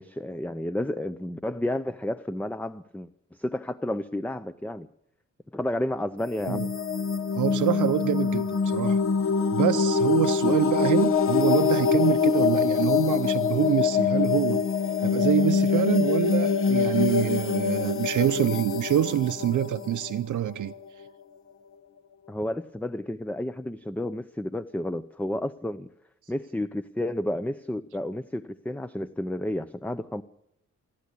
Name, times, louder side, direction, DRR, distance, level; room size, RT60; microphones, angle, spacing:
voice 1, 0.0-3.1 3.4-4.9 5.5-6.6 22.3-25.9 26.3-30.2, left 1 dB, 5° left, 0.7 m, -31 dB
sound 1, 6.2-20.9, left 5 dB, 45° left, 1.0 m, -24 dB
voice 2, 7.3-9.0 9.5-14.6 15.0-20.7, right 11 dB, 80° right, 0.7 m, -26 dB
26.0 x 12.0 x 8.4 m
wide cardioid pair, 110°, 30 cm